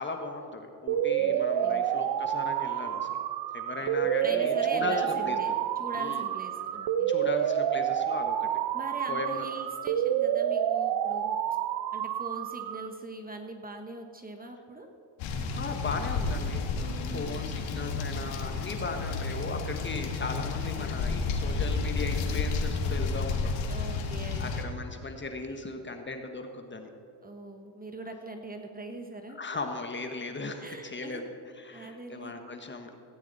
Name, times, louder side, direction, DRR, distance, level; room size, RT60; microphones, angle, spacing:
voice 1, 0.0-3.2 3.5-5.5 6.0-6.3 7.1-8.5 9.1-9.5 15.5-23.6 24.4-26.9 29.3-33.0, left 3 dB, 25° left, 5 dB, 1.2 m, -37 dB
sound 1, 0.9-12.9, right 10 dB, 60° right, 0.7 m, -29 dB
voice 2, 1.2-1.8 4.2-7.1 8.7-11.4 11.9-14.9 16.8-17.4 23.7-24.5 27.2-29.4 30.6-31.3 31.7-32.3, right 2 dB, 20° right, 4 dB, 1.1 m, -42 dB
sound 2, 15.2-24.6, left 4 dB, 75° left, 1.7 m, -31 dB
16.5 x 9.2 x 4.0 m, 2.6 s
cardioid pair, 95°, 46 cm